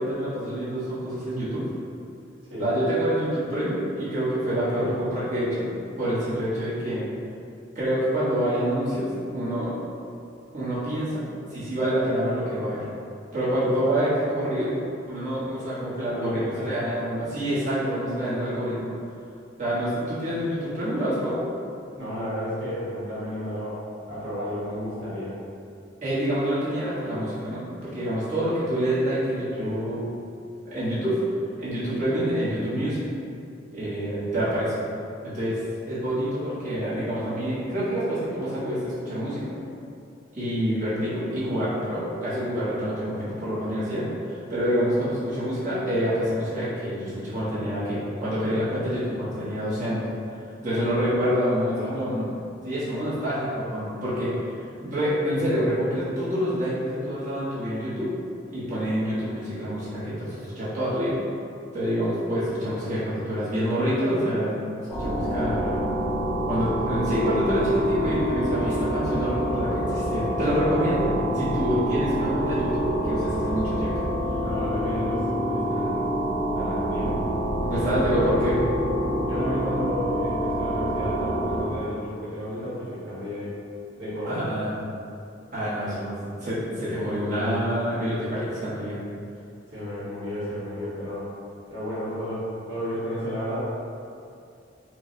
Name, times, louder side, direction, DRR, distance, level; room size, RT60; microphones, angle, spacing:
voice 1, 0.0-1.7 2.6-5.7 6.0-7.0 7.7-9.7 10.5-11.2 11.5-12.8 13.3-14.7 15.1-18.9 19.6-21.4 26.0-30.1 30.7-31.2 31.6-33.1 33.7-34.7 35.2-35.6 35.8-39.6 40.3-50.1 50.6-52.3 52.6-54.3 54.8-58.1 58.5-61.1 61.7-65.6 66.5-73.9 77.0-77.1 77.6-78.6 84.3-84.8 85.5-89.0, equal, 40° right, -11 dB, 1.0 m, -27 dB
voice 2, 16.1-16.7 22.0-23.8 24.1-25.3 29.6-29.8 50.7-50.8 51.1-52.1 65.4-65.8 74.4-76.1 76.5-77.2 77.7-78.6 79.2-83.5 84.0-84.5 89.7-91.3 91.7-93.6, equal, 65° right, -11 dB, 1.3 m, -32 dB
sound 1, 64.9-81.6, equal, 5° right, 0.9 m, -27 dB
4.5 x 2.1 x 2.6 m, 2.5 s
head